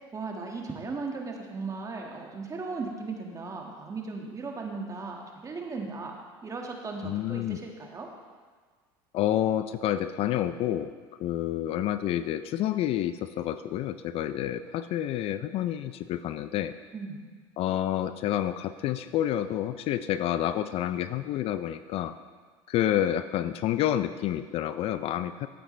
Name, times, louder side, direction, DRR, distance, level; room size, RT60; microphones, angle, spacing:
voice 1, 0.1-6.1 6.4-8.1 16.9-17.2, right 4 dB, 25° right, 1 dB, 1.9 m, -37 dB
voice 2, 7.0-7.6 9.1-10.9 11.2-16.7 17.6-22.2 22.7-25.5, left 11 dB, 55° left, 12 dB, 0.5 m, -29 dB
15.0 x 7.9 x 3.3 m, 1.5 s
hypercardioid pair, 90°, 12 cm